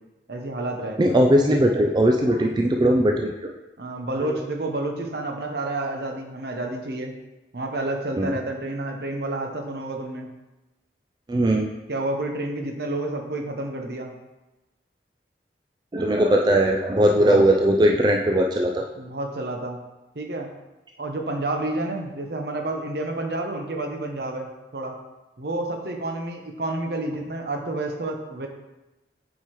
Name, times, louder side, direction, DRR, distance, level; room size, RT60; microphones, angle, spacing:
voice 1, 0.3-1.0 3.8-7.1 7.5-10.3 11.9-14.1 17.2-17.5 19.0-19.8 20.1-20.5 21.0-24.5 24.7-25.0 25.4-28.5, right 2 dB, 65° right, 3 dB, 0.9 m, -29 dB
voice 2, 1.0-3.5 4.2-4.4 8.2-8.3 11.3-11.7 15.9-18.8, right 1 dB, 25° right, 1 dB, 0.3 m, -19 dB
8.0 x 4.6 x 3.1 m, 1.0 s
head